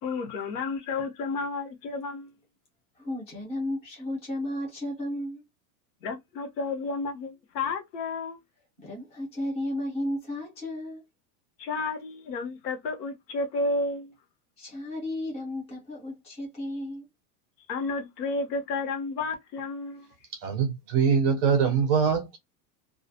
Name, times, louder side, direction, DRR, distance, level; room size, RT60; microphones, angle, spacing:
voice 1, 0.0-2.3 6.0-8.4 11.6-14.1 17.7-20.1, left 3 dB, 75° left, 1.0 m, -31 dB
voice 2, 3.0-5.4 8.8-11.0 14.6-17.1, left 1 dB, 15° left, 0.6 m, -33 dB
voice 3, 20.4-22.4, right 6 dB, 40° right, 0.4 m, -23 dB
2.3 x 2.1 x 2.6 m
supercardioid pair, 180°, 48 cm